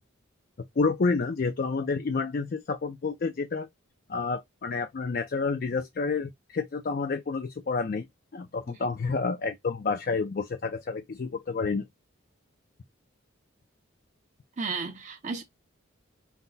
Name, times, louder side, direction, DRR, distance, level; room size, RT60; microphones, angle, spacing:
voice 1, 0.8-3.7 4.1-8.1 8.3-11.9, left 4 dB, 45° left, 0.4 m, -29 dB
voice 2, 14.6-15.4, right 4 dB, 35° right, 0.6 m, -33 dB
5.7 x 2.0 x 3.9 m
head